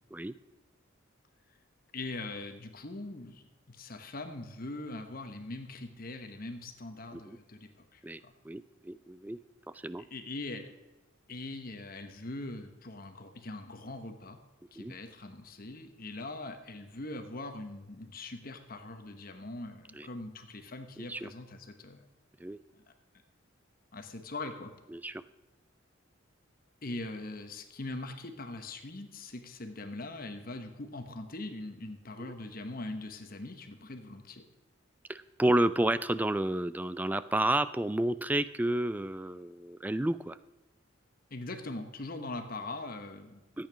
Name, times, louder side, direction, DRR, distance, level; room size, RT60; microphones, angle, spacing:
voice 1, 1.9-8.3 10.0-10.7 11.3-14.4 14.7-22.0 22.7-22.8 23.9-24.7 26.8-34.4 41.3-43.4, left 2 dB, 45° left, 6 dB, 1.1 m, -42 dB
voice 2, 8.0-9.4 9.7-10.0 14.8-14.9 19.9-20.1 21.1-21.3 22.4-22.6 24.9-25.2 32.2-32.3 35.1-40.4 43.6-43.7, right 1 dB, 10° right, 15 dB, 0.3 m, -31 dB
13.5 x 8.9 x 6.2 m, 1.1 s
head